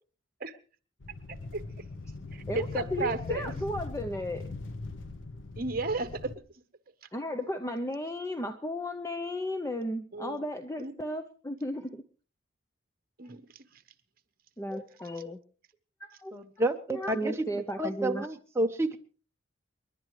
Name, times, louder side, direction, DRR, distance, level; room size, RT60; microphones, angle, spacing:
sound 1, 1.0-6.4, left 3 dB, 70° left, 0.9 m, -40 dB
voice 1, 1.3-1.6 2.3-3.5 5.6-6.3 10.1-10.4 10.8-10.9 13.2-13.6, right 3 dB, 45° right, 1.1 m, -34 dB
voice 2, 2.5-4.4 7.1-12.0 14.6-15.4 16.0-16.3 16.9-18.3, left 1 dB, 15° left, 0.6 m, -34 dB
voice 3, 16.3-17.3 17.8-19.0, right 1 dB, 15° right, 1.0 m, -30 dB
29.0 x 11.0 x 3.2 m
head